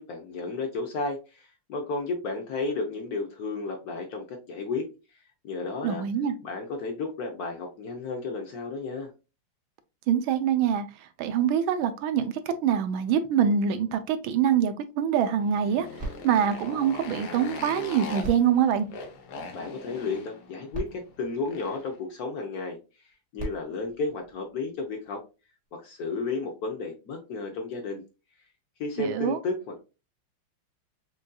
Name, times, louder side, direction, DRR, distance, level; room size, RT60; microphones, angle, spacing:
voice 1, 0.0-4.9 5.4-6.0 6.4-9.1 19.5-22.8 23.3-25.2 25.7-28.0 28.8-29.8, left 3 dB, 65° left, 0.9 m, -33 dB
voice 2, 5.8-6.3 10.1-15.9 16.2-18.9 29.0-29.4, right 8 dB, 75° right, 1.3 m, -25 dB
Motorcycle, 15.3-22.0, left 3 dB, 85° left, 1.8 m, -41 dB
sound 1, 16.0-17.6 18.2-19.8 20.4-20.5 20.7-22.3 23.1-24.9 25.7-25.8, right 2 dB, 25° right, 1.5 m, -41 dB
6.3 x 2.6 x 2.2 m
omnidirectional pair, 2.4 m